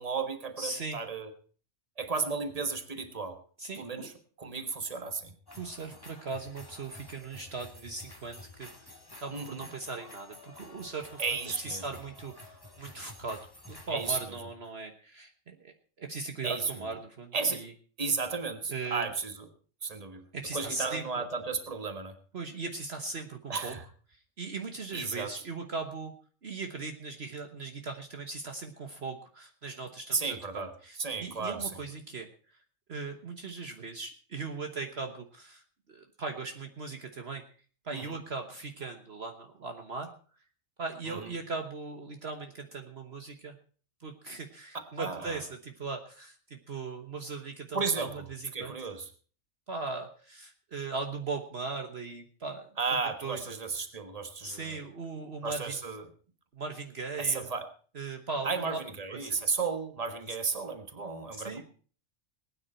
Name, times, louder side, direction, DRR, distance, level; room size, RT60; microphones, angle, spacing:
voice 1, 0.0-1.3 2.0-3.4 3.8-4.1 4.4-5.3 9.3-9.7 11.2-11.9 13.9-14.4 16.4-16.7 17.3-17.6 18.0-19.5 19.8-20.2 20.5-22.1 23.5-23.8 24.9-25.3 30.1-30.7 31.0-31.8 37.9-38.2 41.0-41.3 44.7-45.4 47.7-48.2 48.5-49.1 52.8-54.8 55.4-56.1 57.2-57.6 58.4-61.6, right 4 dB, 30° right, 8 dB, 1.6 m, -33 dB
voice 2, 0.6-1.0 3.6-4.1 5.6-11.2 11.6-13.4 13.7-17.7 18.7-19.1 20.3-21.2 22.3-23.8 24.1-26.1 26.4-32.6 32.9-35.6 35.9-37.4 37.8-40.1 40.8-43.6 44.0-48.8 49.7-52.7 53.2-53.6 54.4-55.8 56.5-57.5 57.9-58.8 59.1-59.4 61.4-61.6, right 4 dB, 55° right, 5 dB, 1.4 m, -39 dB
sound 1, 5.5-14.2, left 2 dB, 15° left, 1.8 m, -51 dB
20.0 x 9.7 x 4.4 m, 0.41 s
omnidirectional pair, 1.4 m